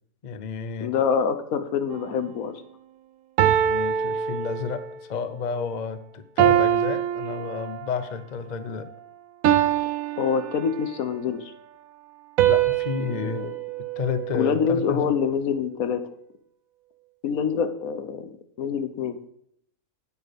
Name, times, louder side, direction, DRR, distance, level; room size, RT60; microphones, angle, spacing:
voice 1, 0.2-0.9 3.5-8.9 12.4-13.5 14.0-15.1, left 6 dB, 45° left, 12 dB, 0.6 m, -31 dB
voice 2, 0.8-2.6 10.2-11.5 13.0-13.5 14.3-16.1 17.2-18.3 18.6-19.2, left 6 dB, 70° left, 10 dB, 1.3 m, -26 dB
sound 1, 1.9-2.2 3.4-5.0 6.4-8.0 9.4-11.1 12.4-14.8, right 10 dB, 70° right, 1.1 m, -24 dB
9.2 x 8.3 x 5.2 m, 0.70 s
omnidirectional pair, 1.5 m